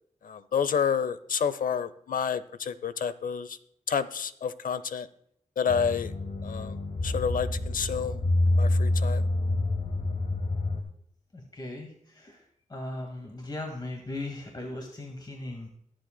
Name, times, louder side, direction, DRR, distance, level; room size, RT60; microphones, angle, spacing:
voice 1, 0.2-3.6 3.9-5.1 5.6-6.1 6.4-6.8 7.0-8.2 8.6-9.2, left 7 dB, 80° left, 15 dB, 0.6 m, -29 dB
sound 1, 5.7-10.8, left 2 dB, 55° left, 1.7 m, -27 dB
voice 2, 11.3-12.4 12.7-15.7, left 2 dB, 30° left, 1 dB, 1.9 m, -38 dB
22.5 x 7.6 x 2.2 m, 0.70 s
wide cardioid pair, 80°, 14 cm